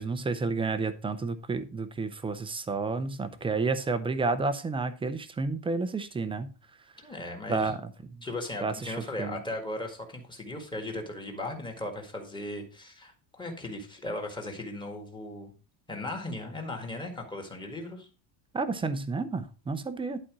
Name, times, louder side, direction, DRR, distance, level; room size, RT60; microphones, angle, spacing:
voice 1, 0.0-6.5 7.5-7.8 8.6-9.4 18.5-20.2, right 4 dB, 10° right, 0.6 m, -30 dB
voice 2, 7.0-7.7 8.2-15.5 15.9-18.1, left 2 dB, 10° left, 1.8 m, -37 dB
11.5 x 4.4 x 6.1 m
cardioid pair, 170°, 45 cm